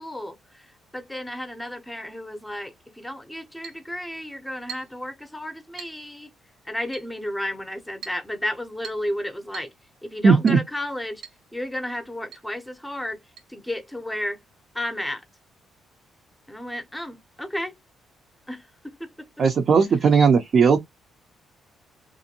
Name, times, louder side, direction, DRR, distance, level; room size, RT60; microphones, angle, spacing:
voice 1, 0.0-6.3 6.7-9.7 10.0-11.2 11.5-13.2 13.5-14.4 14.7-15.2 16.5-17.7 18.5-19.3, left 1 dB, 5° left, 0.7 m, -33 dB
Chink clink, 3.6-3.9 4.7-5.0 5.8-6.0 6.9-7.1 8.0-8.3 8.8-9.1 9.5-9.8 10.5-10.7 11.2-11.4 11.7-11.8 12.3-12.5 13.4-13.5, right 8 dB, 90° right, 1.1 m, -42 dB
voice 2, 10.2-10.6 19.4-20.8, right 5 dB, 55° right, 0.5 m, -17 dB
2.6 x 2.1 x 2.8 m
cardioid pair, 90°, 0 cm